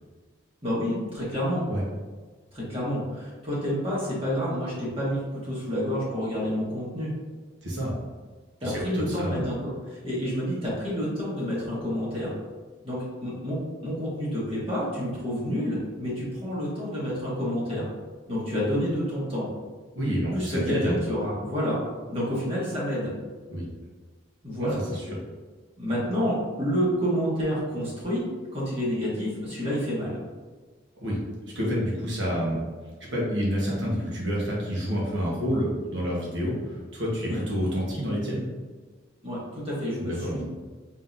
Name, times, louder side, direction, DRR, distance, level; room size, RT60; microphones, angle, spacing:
voice 1, 0.6-1.6 2.5-7.1 8.6-12.3 12.8-13.6 13.8-17.9 18.3-19.5 20.3-21.8 22.1-23.1 24.4-24.8 25.8-28.2 28.5-30.1 37.2-37.4 39.2-40.5, equal, 30° right, -7 dB, 1.4 m, -29 dB
voice 2, 7.6-7.9 8.6-9.5 19.9-20.9 23.5-23.7 24.6-25.2 31.0-31.2 31.5-32.6 33.1-38.5 40.0-40.5, equal, 70° right, -5 dB, 1.3 m, -28 dB
3.7 x 3.7 x 2.6 m, 1.4 s
head